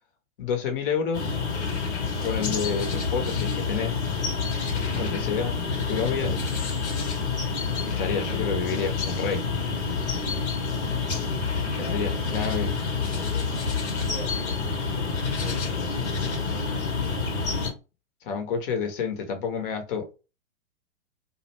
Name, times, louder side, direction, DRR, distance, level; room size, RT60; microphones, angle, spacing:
voice 1, 0.4-1.4 2.2-4.0 5.0-5.6 5.9-6.6 7.8-9.4 11.8-12.8 18.2-20.2, left 6 dB, 45° left, 0.9 m, -29 dB
sound 1, 1.1-17.7, left 4 dB, 65° left, 1.0 m, -28 dB
voice 2, 11.6-12.0 14.0-14.6 14.8-17.3, right 3 dB, 85° right, 1.0 m, -43 dB
2.5 x 2.1 x 2.9 m
figure-of-eight pair, 110°, 38 cm